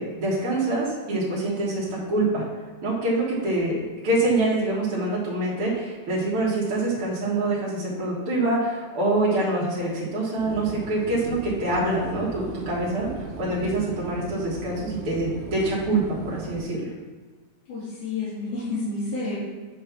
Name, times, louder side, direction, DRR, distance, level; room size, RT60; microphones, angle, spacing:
voice 1, 0.0-2.4 2.8-16.9, right 2 dB, 50° right, -7 dB, 2.2 m, -25 dB
Inside Airplane, 10.4-16.6, right 4 dB, 80° right, 2.4 m, -37 dB
voice 2, 17.7-19.4, left 3 dB, 85° left, -11 dB, 3.3 m, -30 dB
8.0 x 3.3 x 5.8 m, 1.4 s
omnidirectional pair, 3.4 m